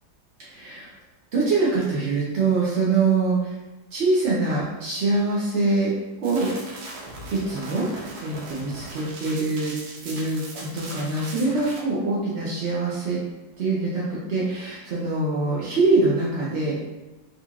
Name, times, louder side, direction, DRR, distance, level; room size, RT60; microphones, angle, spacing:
voice 1, 0.4-0.9 1.3-3.5 3.9-5.9 6.2-6.5 7.3-9.7 10.0-13.2 13.6-16.9, right 3 dB, 70° right, -6 dB, 0.6 m, -24 dB
sound 1, 6.2-11.8, right 2 dB, 90° right, 1.6 m, -39 dB
3.9 x 3.0 x 2.4 m, 1.1 s
omnidirectional pair, 2.2 m